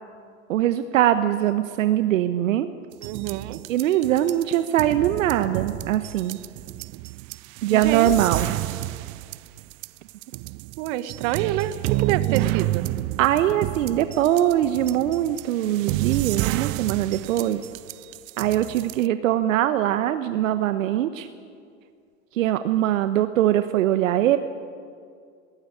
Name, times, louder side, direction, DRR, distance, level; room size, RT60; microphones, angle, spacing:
voice 1, 0.5-2.7 3.7-6.4 7.6-8.6 12.3-12.5 13.2-17.6 18.4-21.3 22.3-24.4, right 12 dB, 75° right, 11 dB, 1.0 m, -22 dB
sound 1, 2.9-19.1, right 21 dB, 40° right, 0.4 m, -30 dB
voice 2, 3.0-3.6 7.7-8.1 10.8-12.8, right 13 dB, 55° right, 13 dB, 1.4 m, -27 dB
19.5 x 17.0 x 9.7 m, 2.2 s
hypercardioid pair, 100°, 40 cm